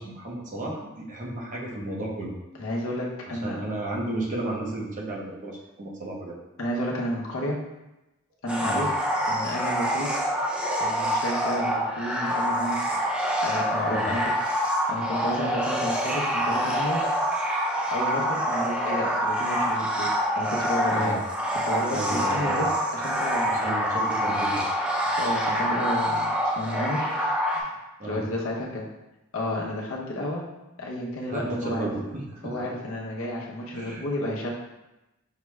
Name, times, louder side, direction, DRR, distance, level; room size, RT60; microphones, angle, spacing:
voice 1, 0.0-2.4 3.3-6.4 8.6-8.8 13.8-14.1 21.0-21.2 21.9-22.6 23.5-24.7 28.0-28.2 31.3-32.7 33.7-34.0, right 1 dB, 35° right, -3 dB, 0.8 m, -33 dB
voice 2, 2.6-3.6 6.6-7.6 8.4-8.9 9.3-10.1 10.8-13.1 13.4-17.0 17.9-21.2 21.6-23.7 25.1-26.3 26.6-28.9 29.3-30.5 30.8-31.9 32.4-34.5, left 1 dB, 70° left, -3 dB, 0.8 m, -31 dB
sound 1, 8.5-27.6, equal, 5° right, 0.4 m, -26 dB
5.8 x 2.3 x 3.1 m, 0.97 s
head